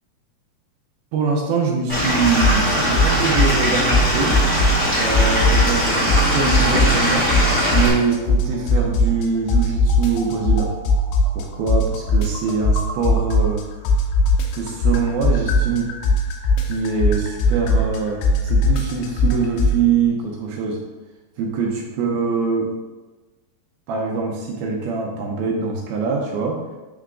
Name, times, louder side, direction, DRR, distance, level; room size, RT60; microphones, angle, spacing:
voice 1, 1.1-4.4 4.9-7.3 7.7-10.7 11.4-13.6 14.5-15.9 16.6-20.8 21.4-22.7 23.9-26.6, right 5 dB, 75° right, 0 dB, 2.3 m, -23 dB
Stream / Liquid, 1.9-7.9, equal, 35° left, 1.0 m, -20 dB
sound 1, 2.4-2.7 2.9-4.9 5.1-7.1 7.3-9.2 9.5-13.6 13.8-19.8, left 1 dB, 80° left, 2.8 m, -18 dB
9.0 x 3.5 x 3.7 m, 1.2 s
omnidirectional pair, 5.0 m